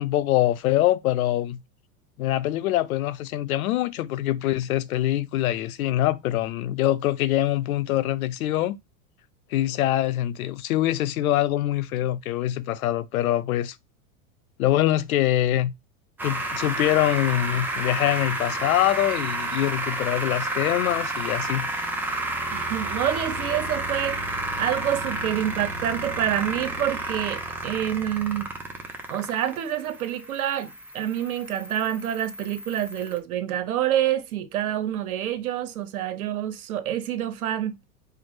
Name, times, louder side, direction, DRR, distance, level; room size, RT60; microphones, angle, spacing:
voice 1, 0.0-1.6 2.2-8.8 9.5-13.8 14.6-15.7 16.2-21.7, left 13 dB, 80° left, 0.6 m, -24 dB
sound 1, 16.2-33.2, right 2 dB, 5° right, 0.4 m, -31 dB
voice 2, 22.5-28.5 29.1-37.8, right 11 dB, 85° right, 0.9 m, -27 dB
4.7 x 2.1 x 4.5 m
hypercardioid pair, 125°, 42 cm